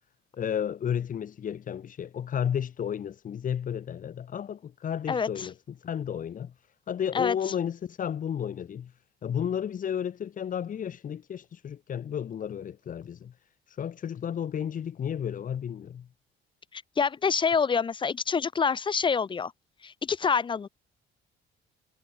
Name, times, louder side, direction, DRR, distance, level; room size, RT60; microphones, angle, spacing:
voice 1, 0.3-6.5 6.9-8.9 9.2-13.3 13.8-16.1, left 8 dB, 40° left, 1.3 m, -32 dB
voice 2, 5.1-5.5 7.1-7.3 16.7-19.5 19.8-20.7, left 6 dB, 25° left, 0.6 m, -27 dB
cardioid pair, 125°, 21 cm